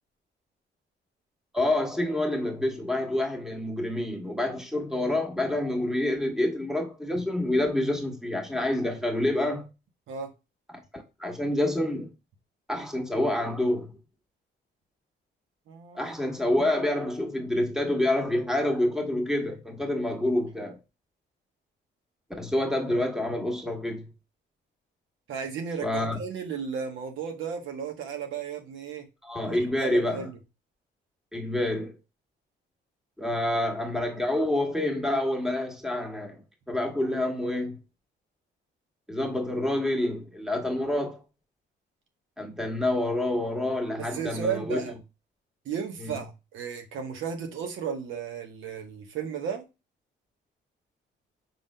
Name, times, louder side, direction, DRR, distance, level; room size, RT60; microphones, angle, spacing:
voice 1, 1.5-9.7 10.9-12.1 12.7-13.9 15.9-20.8 22.4-24.1 25.8-26.2 29.2-30.3 31.3-31.9 33.2-36.4 36.7-37.8 39.1-41.2 42.4-44.8 46.0-46.1, left 1 dB, ahead, 1.3 m, -27 dB
voice 2, 15.7-16.1 25.3-29.1 29.5-30.4 33.5-33.6 44.0-44.9 45.6-49.6, right 7 dB, 80° right, 1.1 m, -34 dB
5.9 x 3.7 x 2.2 m
cardioid pair, 90°, 20 cm